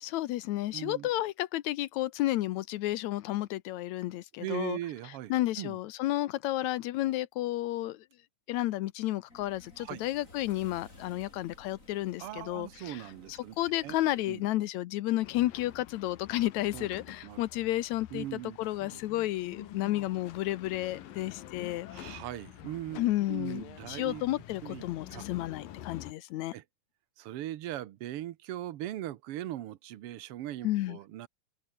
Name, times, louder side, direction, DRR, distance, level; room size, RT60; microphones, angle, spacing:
voice 1, 0.0-4.8 5.3-8.0 8.5-13.0 13.3-22.2 23.0-26.6 30.6-31.0, left 15 dB, 75° left, 1.8 m, -32 dB
voice 2, 0.7-1.1 4.4-5.8 9.8-10.0 12.2-13.5 13.8-13.9 14.3-14.4 16.7-16.9 17.2-17.4 18.1-18.6 18.9-19.0 21.9-24.3 24.6-24.8 25.1-25.3 26.5-26.6 27.2-31.3, right 13 dB, 85° right, 1.3 m, -39 dB
sound 1, 9.3-14.6, left 2 dB, 20° left, 5.6 m, -55 dB
sound 2, 15.2-26.1, left 12 dB, 90° left, 3.2 m, -48 dB
omnidirectional pair, 3.9 m